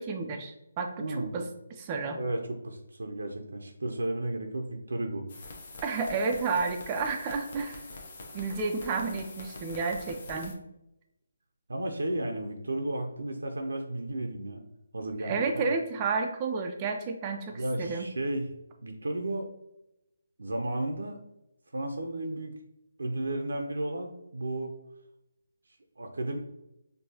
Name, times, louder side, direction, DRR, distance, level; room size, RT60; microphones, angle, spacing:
voice 1, 0.0-1.0 1.3-1.4 1.8-2.2 5.8-7.8 8.3-10.6 15.2-18.1, right 4 dB, 25° right, 4 dB, 0.4 m, -31 dB
voice 2, 1.0-1.4 2.1-5.3 11.7-14.6 14.9-15.7 17.5-18.5 18.8-19.5 20.4-21.2 21.7-22.6 23.0-24.8 26.0-26.4, right 1 dB, 80° right, 4 dB, 0.5 m, -33 dB
sound 1, 5.3-10.5, left 3 dB, 50° left, 0.8 m, -45 dB
4.5 x 2.6 x 2.7 m, 0.88 s
figure-of-eight pair, 155°, 0 cm